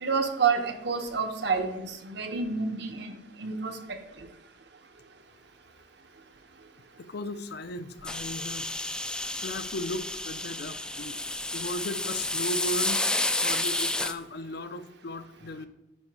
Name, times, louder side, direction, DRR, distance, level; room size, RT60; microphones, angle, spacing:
voice 1, 0.0-3.1 3.4-3.8 4.2-4.3, right 5 dB, 60° right, 6 dB, 1.0 m, -28 dB
voice 2, 7.0-8.7 9.4-11.2 11.5-13.1 13.4-15.7, left 1 dB, 55° left, 11 dB, 0.6 m, -36 dB
sound 1, 8.0-14.1, left 2 dB, 5° left, 0.3 m, -30 dB
9.6 x 4.8 x 4.8 m, 0.94 s
head